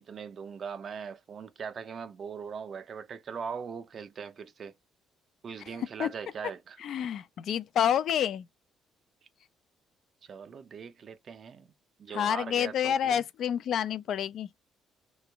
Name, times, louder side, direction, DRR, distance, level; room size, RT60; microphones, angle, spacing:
voice 1, 0.0-4.7 5.4-6.8 10.2-11.7 12.0-13.2, right 6 dB, 35° right, 0.6 m, -40 dB
voice 2, 6.8-8.5 12.1-14.5, left 9 dB, 50° left, 0.4 m, -28 dB
3.2 x 2.9 x 3.4 m
cardioid pair, 170°, 0 cm